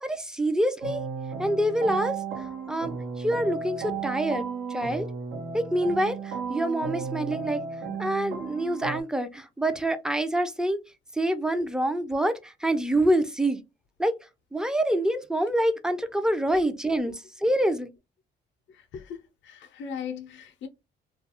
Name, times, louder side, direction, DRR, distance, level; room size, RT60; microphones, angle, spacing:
voice 1, 0.0-1.0 1.4-2.1 2.7-2.9 3.2-4.4 4.7-5.1 5.5-6.2 6.5-7.6 8.0-10.8 11.2-12.3 12.6-13.6 14.0-14.1 14.5-17.1 17.4-17.9, right 1 dB, 5° right, 0.4 m, -26 dB
sound 1, 0.8-9.0, right 5 dB, 85° right, 0.8 m, -34 dB
voice 2, 18.9-20.7, left 7 dB, 70° left, 0.5 m, -38 dB
2.3 x 2.3 x 2.8 m
cardioid pair, 90°, 20 cm